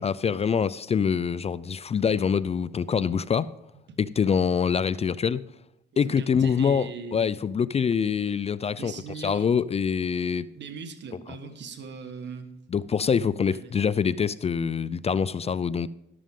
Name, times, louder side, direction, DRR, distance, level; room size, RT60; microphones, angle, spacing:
voice 1, 0.0-3.5 4.0-5.4 6.0-10.5 12.7-15.9, left 6 dB, 30° left, 0.4 m, -25 dB
voice 2, 6.0-7.3 8.8-9.5 10.5-12.5 13.5-13.7, right 5 dB, 60° right, 1.6 m, -39 dB
12.5 x 12.5 x 3.8 m
cardioid pair, 90°, 20 cm